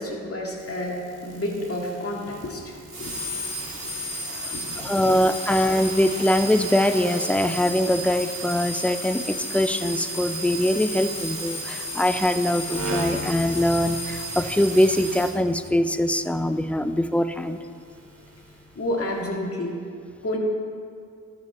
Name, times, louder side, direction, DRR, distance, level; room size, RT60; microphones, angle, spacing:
voice 1, 0.0-5.2 18.8-19.7 20.2-20.4, left 1 dB, 40° left, -1 dB, 2.0 m, -31 dB
sound 1, 0.6-18.5 19.0-19.3, right 1 dB, 60° right, 2.3 m, -33 dB
voice 2, 4.8-17.6, left 1 dB, 5° left, 11 dB, 0.5 m, -22 dB
12.5 x 5.0 x 4.2 m, 2.3 s
supercardioid pair, 40°, 36 cm